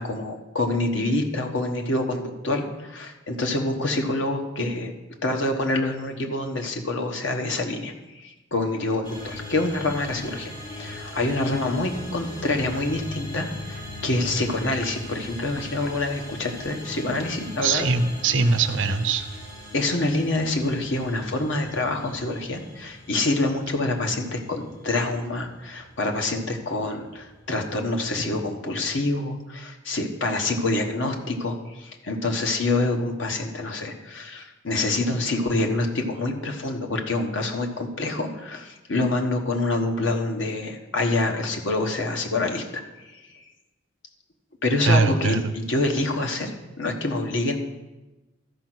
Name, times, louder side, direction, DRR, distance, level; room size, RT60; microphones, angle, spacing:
voice 1, 0.0-4.9 5.2-17.9 19.7-42.8 44.6-46.5 46.8-47.6, left 2 dB, 80° left, 3 dB, 1.4 m, -26 dB
sound 1, 9.0-28.2, left 1 dB, 25° left, 3.2 m, -40 dB
voice 2, 17.6-19.4 44.8-45.5, right 4 dB, 80° right, 9 dB, 0.8 m, -22 dB
13.0 x 5.3 x 6.2 m, 1.1 s
head